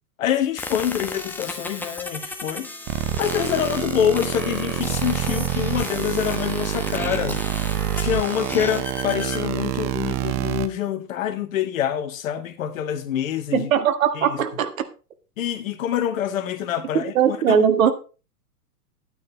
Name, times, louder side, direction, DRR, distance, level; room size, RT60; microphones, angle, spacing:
voice 1, 0.2-2.7 3.2-7.4 7.9-13.7 14.1-14.4 15.4-17.7, left 10 dB, 60° left, 1.6 m, -26 dB
digital noise, 0.6-9.4, left 2 dB, 5° left, 1.1 m, -34 dB
sound 1, 2.9-10.7, right 13 dB, 20° right, 0.4 m, -27 dB
voice 2, 13.5-14.7 16.9-17.9, right 8 dB, 60° right, 1.7 m, -20 dB
11.0 x 9.3 x 3.9 m
hypercardioid pair, 120°, 46 cm